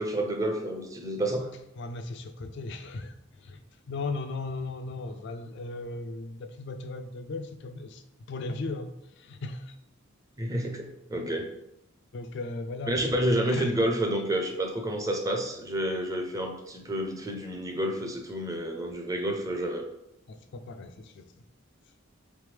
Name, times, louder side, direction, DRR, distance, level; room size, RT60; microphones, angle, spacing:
voice 1, 0.0-1.5 10.4-11.5 12.9-19.8, right 1 dB, 15° right, 3 dB, 0.5 m, -29 dB
voice 2, 1.8-3.6 3.9-9.8 12.1-13.0 13.5-13.7 20.3-21.3, left 3 dB, 60° left, 7 dB, 0.3 m, -37 dB
3.4 x 3.2 x 3.3 m, 0.81 s
head